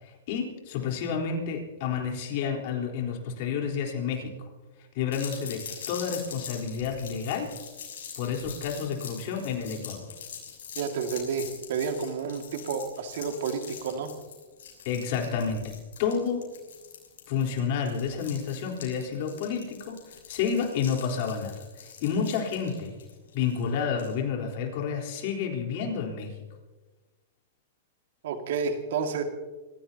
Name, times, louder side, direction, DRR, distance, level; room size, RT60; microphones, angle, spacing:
voice 1, 0.0-4.5 4.9-7.6 8.2-10.1 14.8-15.7 16.0-16.4 17.3-22.9 23.3-26.3, left 6 dB, 55° left, 0 dB, 4.0 m, -30 dB
sound 1, 5.1-24.1, left 7 dB, 80° left, 6.1 m, -44 dB
voice 2, 10.8-14.1 28.2-29.2, right 6 dB, 70° right, 4 dB, 2.1 m, -30 dB
27.0 x 16.5 x 2.9 m, 1.2 s
hypercardioid pair, 135°, 0 cm